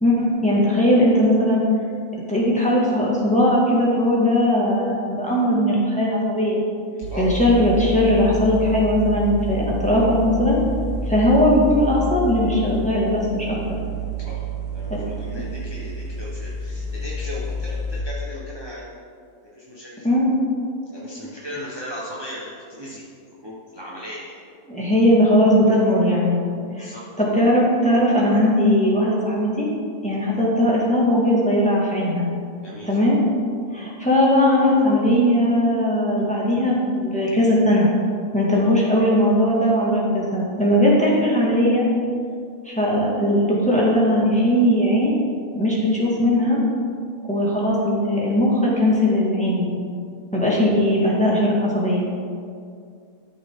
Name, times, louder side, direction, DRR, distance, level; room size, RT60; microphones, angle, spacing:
voice 1, 0.0-1.6 2.3-6.6 7.2-10.6 11.1-13.6 20.0-20.3 24.7-26.4 26.8-26.9 27.2-29.7 30.0-32.3 32.9-33.2 33.7-37.9 38.3-41.9 42.7-45.1 45.5-46.6 47.3-49.8 50.3-52.1, left 1 dB, 5° left, -6 dB, 2.0 m, -19 dB
sound 1, 7.0-18.0, right 1 dB, 80° right, 1.4 m, -29 dB
voice 2, 14.7-18.8 19.5-20.1 20.9-23.0 23.4-24.3 26.7-27.0 32.6-32.9 33.7-33.9 38.5-38.7, equal, 15° right, -6 dB, 1.2 m, -36 dB
13.0 x 6.6 x 3.8 m, 2.3 s
omnidirectional pair, 1.7 m